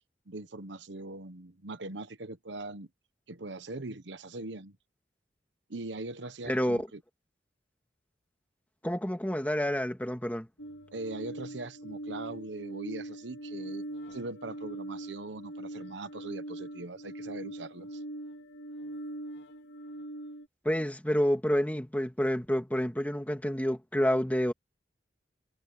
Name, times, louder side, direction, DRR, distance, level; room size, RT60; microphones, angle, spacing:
voice 1, 0.3-2.9 3.3-4.8 5.7-7.0 10.9-13.8 14.1-18.0, right 2 dB, 80° right, 1.1 m, -41 dB
voice 2, 6.5-6.9 8.8-10.5 20.6-24.5, equal, 10° left, 2.2 m, -28 dB
sound 1, 10.6-20.5, right 1 dB, 80° left, 2.3 m, -42 dB
head